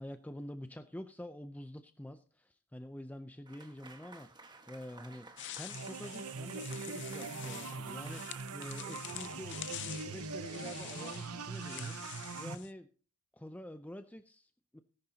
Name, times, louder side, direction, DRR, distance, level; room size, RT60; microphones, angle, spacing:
voice 1, 0.0-4.4 4.7-5.3 5.6-12.9 13.3-14.8, left 1 dB, 5° left, 9 dB, 0.5 m, -47 dB
Applause / Crowd, 3.5-10.3, right 3 dB, 20° right, 1.5 m, -56 dB
sound 1, 5.4-12.7, left 13 dB, 55° left, 0.6 m, -47 dB
sound 2, 5.7-12.5, right 4 dB, 80° right, 0.9 m, -42 dB
17.5 x 10.5 x 2.8 m, 0.39 s
head